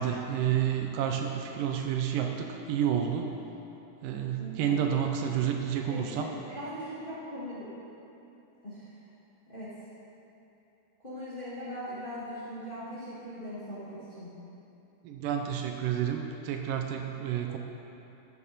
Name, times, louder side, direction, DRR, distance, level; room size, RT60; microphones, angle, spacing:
voice 1, 0.0-3.3 4.0-6.3 15.0-17.6, right 9 dB, 80° right, 3 dB, 2.2 m, -30 dB
voice 2, 4.4-4.7 5.8-7.7 8.6-8.9 9.5-9.7 11.0-14.3, equal, 20° left, -10 dB, 1.5 m, -40 dB
13.0 x 7.0 x 4.2 m, 3.0 s
omnidirectional pair, 4.0 m